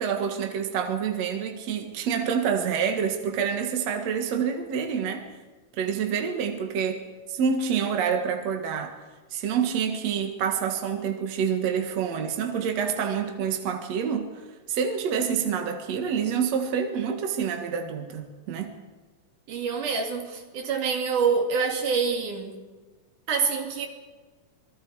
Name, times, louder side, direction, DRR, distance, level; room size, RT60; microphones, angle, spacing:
voice 1, 0.0-5.3 5.8-7.0 7.3-8.9 9.3-14.3 14.7-18.7, right 7 dB, 60° right, 4 dB, 2.7 m, -27 dB
voice 2, 19.5-22.6 23.3-23.9, right 5 dB, 85° right, 3 dB, 3.9 m, -26 dB
27.5 x 21.5 x 4.8 m, 1.3 s
omnidirectional pair, 3.5 m